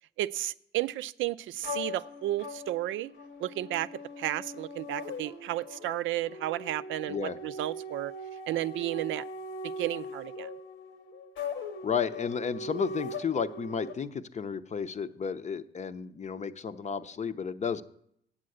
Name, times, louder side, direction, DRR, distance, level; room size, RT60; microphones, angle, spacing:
voice 1, 0.2-3.1 3.4-3.9 4.2-8.1 8.5-9.2 9.6-10.5, right 14 dB, 75° right, 15 dB, 0.4 m, -33 dB
sound 1, 1.6-13.9, left 2 dB, 90° left, 1.4 m, -40 dB
voice 2, 11.8-17.8, left 6 dB, 35° left, 12 dB, 0.6 m, -32 dB
8.6 x 7.5 x 7.8 m, 0.70 s
cardioid pair, 90°, 20 cm